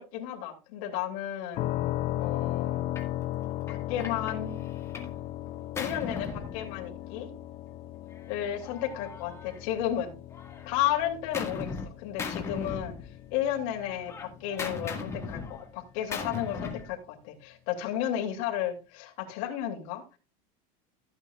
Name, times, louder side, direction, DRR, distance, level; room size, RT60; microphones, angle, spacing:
voice 1, 0.0-1.7 2.2-2.9 3.7-4.6 5.8-7.3 8.3-10.1 10.6-12.9 13.3-20.2, left 11 dB, 65° left, 1 dB, 2.8 m, -33 dB
sound 1, 1.6-15.3, left 14 dB, 35° left, 0.5 m, -37 dB
Gunshot gunfire, 3.0-3.2 3.7-5.2 5.5-7.2 8.1-10.0 10.3-11.9 12.2-13.4 13.7-16.9, left 5 dB, 15° left, 1.8 m, -39 dB
15.5 x 8.7 x 2.4 m, 0.29 s
supercardioid pair, 160°, 18 cm